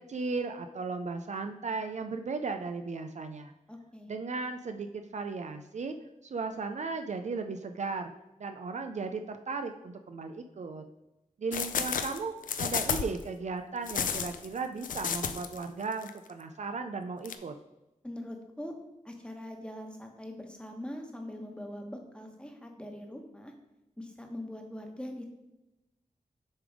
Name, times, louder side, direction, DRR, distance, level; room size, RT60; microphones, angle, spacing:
voice 1, 0.0-3.5 4.1-5.9 6.2-8.1 8.4-10.8 11.4-17.5, right 4 dB, 60° right, 7 dB, 0.4 m, -36 dB
voice 2, 3.7-4.1 18.0-18.7 19.0-23.5 24.0-25.2, left 1 dB, 5° left, 3 dB, 1.2 m, -42 dB
sound 1, 11.5-13.2 13.9-15.6 15.9-16.1 17.3-17.4, left 7 dB, 90° left, 0.4 m, -32 dB
7.1 x 3.4 x 4.9 m, 0.96 s
cardioid pair, 50°, 13 cm